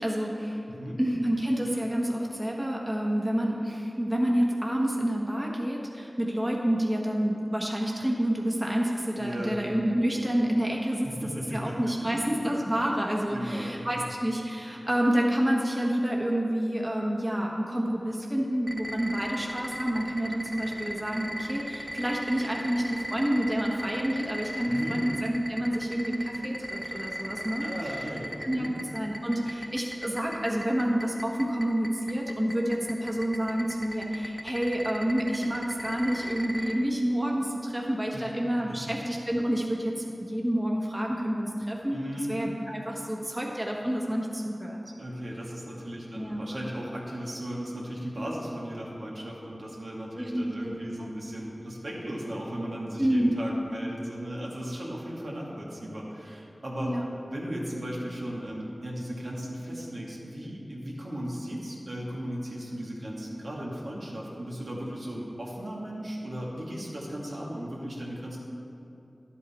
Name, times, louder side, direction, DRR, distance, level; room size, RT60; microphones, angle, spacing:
voice 1, 0.0-0.6 1.0-11.1 11.5-27.6 28.4-42.0 42.3-44.8 46.1-46.5 50.2-51.1 53.0-53.4 56.8-57.0, equal, 20° right, -1 dB, 1.3 m, -28 dB
voice 2, 0.7-1.0 9.2-9.6 11.0-12.4 13.3-13.8 24.6-25.0 27.6-28.3 28.5-28.8 38.1-38.3 38.6-38.9 41.9-42.3 45.0-57.0 57.2-68.4, equal, 75° right, -4 dB, 1.9 m, -36 dB
sound 1, 18.7-36.7, equal, 5° right, 1.5 m, -36 dB
11.5 x 8.2 x 4.3 m, 2.7 s
wide cardioid pair, 40°, 0 cm